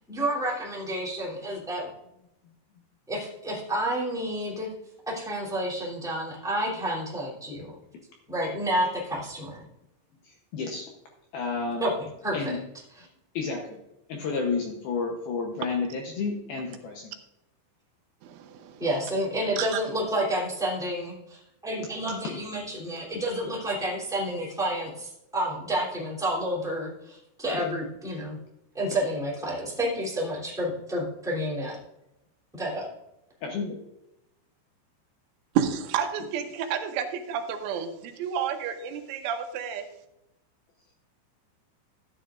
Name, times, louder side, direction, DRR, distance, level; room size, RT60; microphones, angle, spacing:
voice 1, 0.1-1.9 3.1-4.7 5.1-7.7 8.3-9.6 11.8-12.6 12.9-13.1 18.8-28.4 28.7-31.8 32.5-32.9, right 1 dB, ahead, -6 dB, 1.8 m, -30 dB
voice 2, 10.2-10.9 11.3-11.9 12.3-12.6 13.3-13.8 14.1-17.1 27.5-27.7 33.4-33.8, left 4 dB, 75° left, 2 dB, 2.3 m, -31 dB
voice 3, 18.2-18.9 19.6-19.8 35.6-39.9, right 8 dB, 85° right, 6 dB, 3.4 m, -30 dB
13.5 x 9.9 x 2.5 m, 0.86 s
omnidirectional pair, 5.4 m